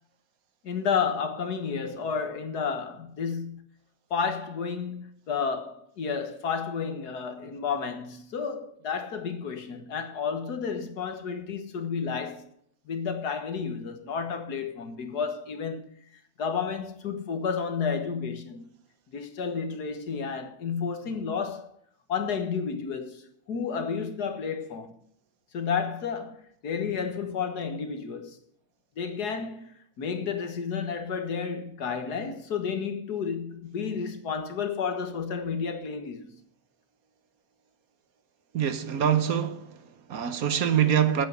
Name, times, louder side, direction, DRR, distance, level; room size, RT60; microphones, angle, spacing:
voice 1, 0.6-3.6 4.1-12.5 12.9-15.9 16.4-18.7 19.1-21.7 22.1-23.2 23.5-24.9 25.5-28.4 29.0-36.4, left 6 dB, 80° left, 2.0 m, -31 dB
voice 2, 38.5-41.3, right 9 dB, 65° right, 1.4 m, -25 dB
9.1 x 8.3 x 9.4 m
omnidirectional pair, 1.7 m